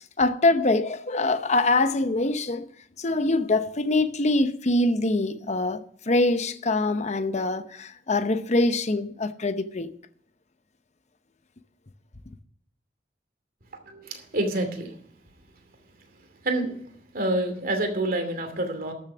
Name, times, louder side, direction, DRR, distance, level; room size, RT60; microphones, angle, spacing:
voice 1, 0.0-2.7 3.0-9.9, left 2 dB, 40° left, 0.8 m, -24 dB
voice 2, 13.8-15.0 16.4-16.8 17.1-18.9, right 1 dB, 55° right, 2.5 m, -27 dB
12.5 x 7.3 x 6.0 m
head